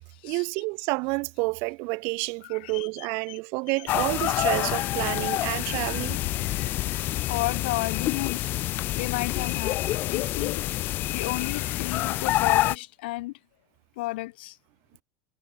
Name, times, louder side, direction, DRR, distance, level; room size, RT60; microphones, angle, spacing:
voice 1, 0.2-6.2, right 29 dB, 55° right, 1.4 m, -29 dB
voice 2, 2.4-3.4 3.8-3.9 5.0-5.1 5.6-5.8 6.4-8.5 9.0-10.6 11.1-13.3 14.0-14.6, left 20 dB, 75° left, 2.0 m, -33 dB
sound 1, 3.9-12.8, left 16 dB, 40° left, 0.7 m, -27 dB
supercardioid pair, 155°, 5 cm